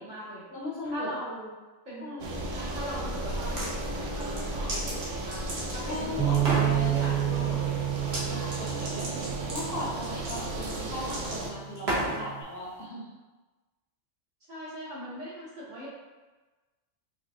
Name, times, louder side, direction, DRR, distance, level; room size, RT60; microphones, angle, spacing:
voice 1, 0.0-0.5 0.8-1.5 1.8-2.1 2.5-7.8 8.2-8.8 14.5-15.9, equal, 35° right, -9 dB, 1.3 m, -40 dB
voice 2, 0.5-1.1 2.0-2.4 5.9-7.0 8.3-13.1, left 2 dB, 55° left, -4 dB, 0.8 m, -37 dB
sound 1, 2.2-11.5, right 1 dB, 70° right, 0.9 m, -35 dB
sound 2, 3.3-3.7 4.2-6.0 6.3-6.7 8.0-8.2 8.5-12.2, right 1 dB, 55° right, 1.2 m, -33 dB
Bass guitar, 6.2-10.6 11.3-12.4, right 14 dB, 10° left, 0.5 m, -30 dB
5.1 x 2.4 x 2.8 m, 1.2 s
omnidirectional pair, 1.3 m